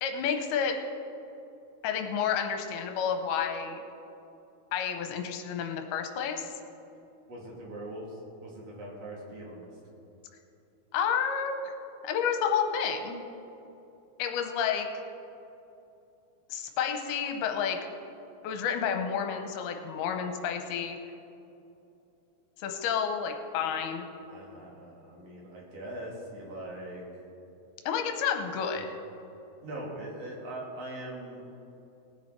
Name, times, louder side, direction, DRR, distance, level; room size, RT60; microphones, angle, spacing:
voice 1, 0.0-0.8 1.8-3.8 4.7-6.5 10.9-11.7 12.0-13.2 14.2-14.9 16.5-17.8 18.4-21.0 22.6-24.1 27.9-28.9, left 7 dB, 80° left, 5 dB, 2.8 m, -30 dB
voice 2, 7.3-9.7 23.7-23.8 24.3-27.2 29.6-31.4, right 1 dB, 45° right, -4 dB, 3.3 m, -41 dB
20.0 x 7.4 x 4.6 m, 2.8 s
omnidirectional pair, 4.5 m